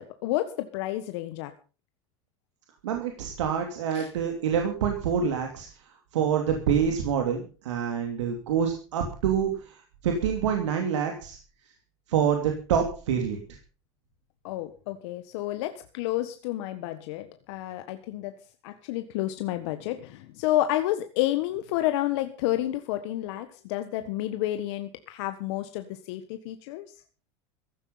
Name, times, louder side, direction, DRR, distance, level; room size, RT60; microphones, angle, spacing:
voice 1, 0.0-1.5 3.9-4.1 5.2-5.3 14.4-26.9, left 14 dB, 70° left, 9 dB, 1.5 m, -30 dB
voice 2, 2.8-5.7 6.1-9.8 10.0-11.4 12.1-13.4, right 7 dB, 85° right, 4 dB, 2.9 m, -26 dB
15.5 x 12.0 x 5.6 m, 0.37 s
supercardioid pair, 100°, 15 cm